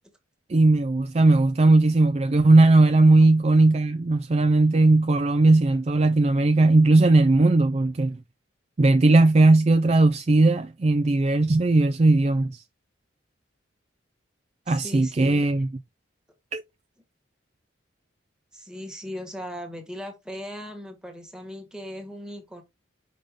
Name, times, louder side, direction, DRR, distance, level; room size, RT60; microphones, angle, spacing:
voice 1, 0.5-8.2 8.8-12.6 14.7-15.7 16.5-16.6, right 2 dB, 35° right, 0.4 m, -18 dB
voice 2, 14.7-15.5 18.5-22.6, equal, 5° right, 1.4 m, -38 dB
5.4 x 5.3 x 3.5 m
head